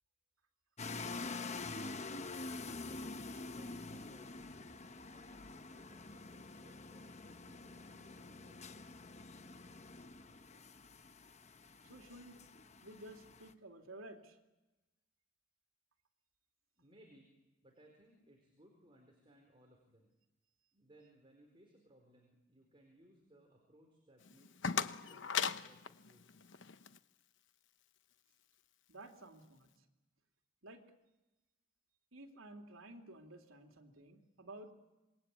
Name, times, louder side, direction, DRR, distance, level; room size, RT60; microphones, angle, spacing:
sound 1, 0.8-13.5, left 3 dB, 35° left, 1.0 m, -47 dB
voice 1, 1.7-2.5 2.8-4.8 5.1-9.0 16.8-17.3 17.6-20.1 20.7-26.5, right 1 dB, 25° right, 2 dB, 4.5 m, -65 dB
voice 2, 11.8-12.4 12.8-14.4 28.9-29.7 30.6-30.8 32.1-34.7, right 1 dB, 80° right, 3 dB, 3.2 m, -53 dB
sound 2, 24.2-27.0, left 6 dB, 60° left, 1.0 m, -39 dB
27.5 x 22.0 x 8.5 m, 1.0 s
head